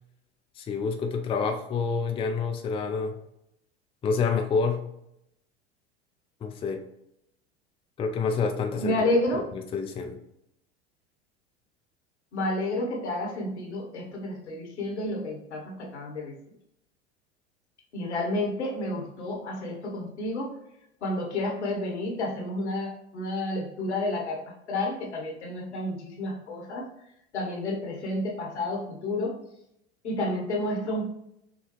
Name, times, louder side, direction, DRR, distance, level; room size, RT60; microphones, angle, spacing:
voice 1, 0.6-3.2 4.0-4.8 6.4-6.8 8.0-10.2, left 5 dB, 15° left, 4 dB, 0.5 m, -28 dB
voice 2, 8.8-9.5 12.3-16.3 17.9-20.6 21.0-26.8 27.3-29.4 30.0-31.1, left 1 dB, 75° left, 0 dB, 1.3 m, -30 dB
6.4 x 2.4 x 3.0 m, 0.80 s
figure-of-eight pair, 80°, 34 cm